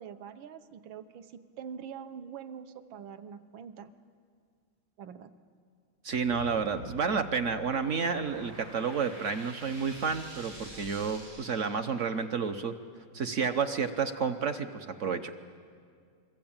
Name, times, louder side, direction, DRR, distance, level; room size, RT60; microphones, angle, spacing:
voice 1, 0.0-3.9 5.0-5.3, right 7 dB, 70° right, 10 dB, 1.7 m, -44 dB
voice 2, 6.0-12.8 13.1-15.3, right 5 dB, 50° right, 8 dB, 0.9 m, -30 dB
sound 1, 6.1-12.4, equal, 90° right, 8.1 m, -47 dB
27.5 x 22.0 x 8.9 m, 2.1 s
omnidirectional pair, 2.3 m